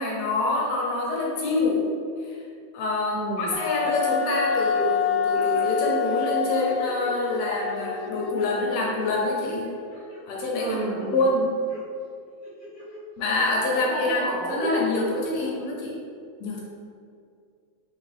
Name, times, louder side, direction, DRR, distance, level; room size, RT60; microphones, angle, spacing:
voice 1, 0.0-1.9 2.2-2.4 2.7-9.7 10.3-10.8 11.1-11.6 13.2-16.0 16.4-16.6, left 2 dB, 75° left, -3 dB, 1.9 m, -26 dB
voice 2, 3.1-3.5 10.6-11.3 13.7-14.8, right 1 dB, 85° right, -13 dB, 0.6 m, -31 dB
Wind instrument woodwind instrument, 3.5-9.0, left 7 dB, 90° left, 2.1 m, -27 dB
sound 1, 4.3-5.0 5.3-7.1 7.5-7.9 8.4-8.9 9.3-10.2 10.6-11.2 11.7-11.8 12.4-13.0 13.4-13.5, right 1 dB, 40° left, 1.0 m, -42 dB
4.3 x 3.6 x 3.3 m, 2.3 s
omnidirectional pair, 3.4 m